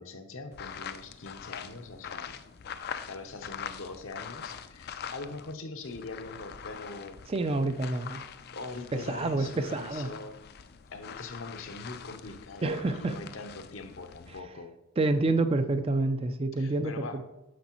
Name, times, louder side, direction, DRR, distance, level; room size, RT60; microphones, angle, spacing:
voice 1, 0.0-2.4 3.1-7.2 8.5-10.5 10.9-14.7 16.6-17.2, left 3 dB, 65° left, 7 dB, 0.8 m, -42 dB
sound 1, 0.5-5.5 5.8-14.4, left 7 dB, 45° left, 0.4 m, -44 dB
voice 2, 7.3-8.3 8.9-10.1 12.6-13.2 15.0-17.2, right 2 dB, 25° right, 9 dB, 0.3 m, -28 dB
9.4 x 6.9 x 3.0 m, 0.97 s
head